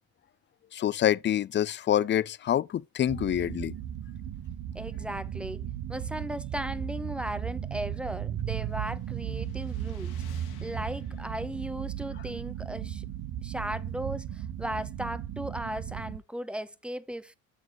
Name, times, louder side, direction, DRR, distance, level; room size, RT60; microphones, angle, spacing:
voice 1, 0.7-3.7, left 11 dB, 30° left, 0.4 m, -26 dB
sound 1, 3.1-16.2, right 10 dB, 55° right, 1.1 m, -36 dB
voice 2, 4.7-5.6 5.9-10.1 10.6-13.0 13.4-17.4, right 1 dB, 5° right, 0.7 m, -36 dB
sound 2, 8.6-13.9, left 5 dB, 80° left, 2.6 m, -52 dB
8.5 x 6.5 x 3.1 m
supercardioid pair, 80°, 38 cm